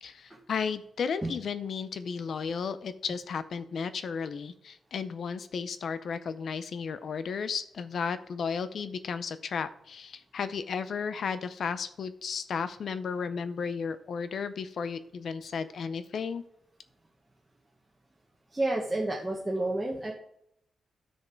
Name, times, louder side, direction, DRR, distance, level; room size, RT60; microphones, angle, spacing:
voice 1, 0.0-16.4, left 6 dB, 55° left, 13 dB, 0.6 m, -34 dB
voice 2, 18.5-20.1, right 2 dB, 10° right, -3 dB, 1.2 m, -30 dB
11.5 x 6.5 x 4.5 m, 0.73 s
wide cardioid pair, 175°, 0 cm